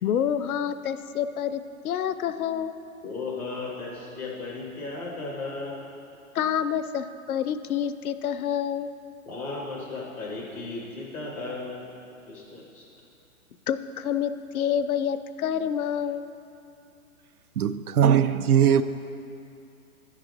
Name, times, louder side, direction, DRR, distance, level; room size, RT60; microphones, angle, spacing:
voice 1, 0.0-2.7 6.3-8.9 13.7-16.2, left 9 dB, 75° left, 12 dB, 0.5 m, -28 dB
voice 2, 3.0-5.9 9.3-11.9 12.3-12.9, left 3 dB, 5° left, -4 dB, 0.4 m, -35 dB
voice 3, 17.6-18.8, right 8 dB, 90° right, 12 dB, 0.5 m, -20 dB
9.8 x 4.0 x 6.1 m, 2.7 s
hypercardioid pair, 125°, 43 cm